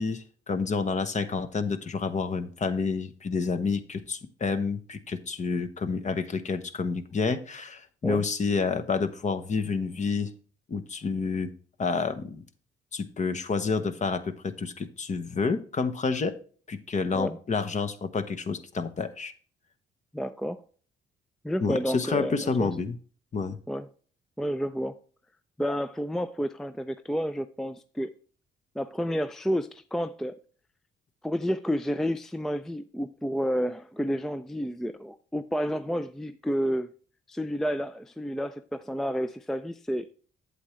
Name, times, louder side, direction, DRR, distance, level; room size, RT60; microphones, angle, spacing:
voice 1, 0.0-10.3 10.7-11.5 11.8-12.4 12.9-16.3 16.7-19.3 21.6-22.9 23.3-23.6, left 4 dB, 35° left, 0.9 m, -29 dB
voice 2, 20.1-20.6 21.4-22.7 23.7-23.9 24.4-25.0 25.6-28.1 28.8-30.4 31.2-36.9 37.3-40.1, equal, ahead, 0.4 m, -30 dB
8.2 x 7.8 x 3.1 m
cardioid pair, 90°, 20 cm